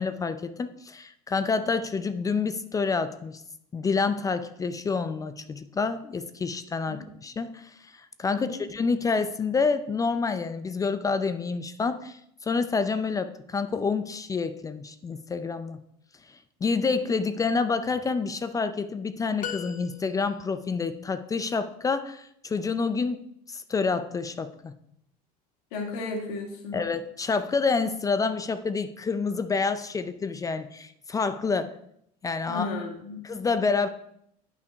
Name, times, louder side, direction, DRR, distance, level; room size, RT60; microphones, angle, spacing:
voice 1, 0.0-3.4 3.7-15.8 16.6-24.7 26.7-31.7 32.2-32.7 33.2-33.9, left 4 dB, 15° left, 11 dB, 0.4 m, -28 dB
sound 1, 19.4-20.5, left 10 dB, 45° left, 0.9 m, -38 dB
voice 2, 25.7-26.8 32.5-33.2, left 3 dB, 80° left, 1 dB, 2.3 m, -34 dB
9.4 x 5.8 x 4.6 m, 0.72 s
supercardioid pair, 125°, 19 cm